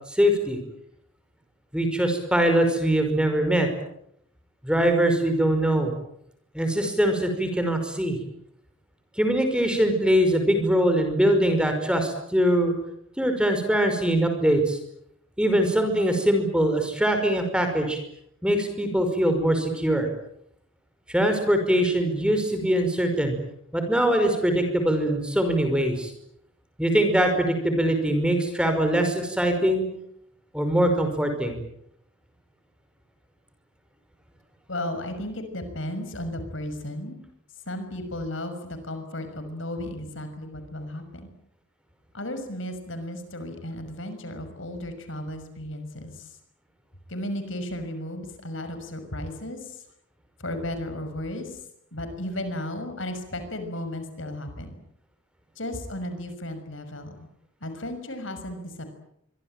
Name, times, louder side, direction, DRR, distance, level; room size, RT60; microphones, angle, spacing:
voice 1, 0.1-0.6 1.7-3.7 4.6-5.9 6.5-8.2 9.2-12.7 13.2-14.8 15.4-18.0 18.4-20.1 21.1-23.4 23.7-26.1 26.8-29.8 30.5-31.6, right 1 dB, 5° right, 6 dB, 5.4 m, -22 dB
voice 2, 34.7-37.2 37.7-41.3 42.1-46.4 47.1-49.8 50.4-51.6 51.9-54.7 55.6-57.3 57.6-58.9, left 1 dB, 70° left, 8 dB, 6.2 m, -34 dB
25.5 x 23.5 x 9.1 m, 0.74 s
head